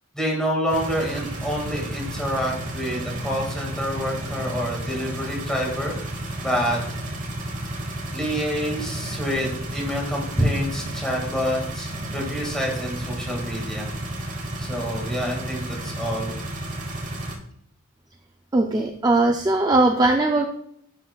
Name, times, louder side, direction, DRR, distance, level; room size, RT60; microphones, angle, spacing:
voice 1, 0.1-5.9 6.4-6.8 8.1-13.9 14.6-16.4, equal, 5° left, -2 dB, 1.9 m, -27 dB
sound 1, 0.7-17.3, right 1 dB, 35° right, 1.3 m, -32 dB
voice 2, 18.5-20.4, right 2 dB, 20° right, 3 dB, 0.4 m, -19 dB
9.7 x 6.4 x 2.3 m, 0.70 s
head